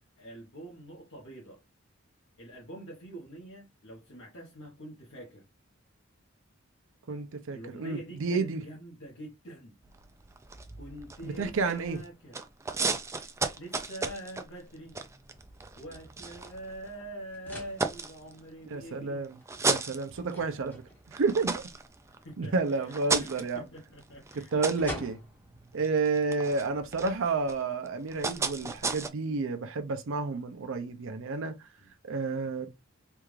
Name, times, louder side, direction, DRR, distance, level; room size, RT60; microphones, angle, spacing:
voice 1, 0.2-1.6 2.4-5.4 7.5-9.8 10.7-12.4 13.6-15.0 15.8-19.2 22.1-24.5 31.8-31.9, right 1 dB, 65° left, 1.0 m, -45 dB
voice 2, 7.1-8.6 11.2-12.0 18.7-19.4 19.6-20.8 21.1-21.5 22.4-23.6 24.3-25.2 25.7-31.5 32.0-32.7, right 4 dB, 65° right, 0.5 m, -30 dB
sound 1, 9.8-12.1 12.3-17.0 17.5-18.7 19.2-20.7 21.1-29.1, right 3 dB, 15° right, 0.3 m, -35 dB
sound 2, 14.7-27.6, equal, 10° left, 1.1 m, -50 dB
3.4 x 2.4 x 3.1 m
head